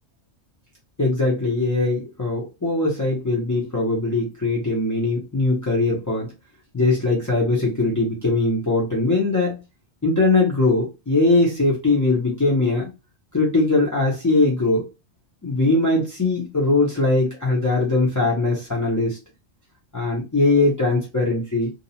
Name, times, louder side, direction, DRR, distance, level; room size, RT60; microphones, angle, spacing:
voice 1, 1.0-6.3 6.7-9.6 10.0-12.9 13.3-14.8 15.4-19.2 19.9-21.7, left 2 dB, 30° left, -4 dB, 0.3 m, -21 dB
2.6 x 2.0 x 2.7 m, 0.27 s
omnidirectional pair, 1.2 m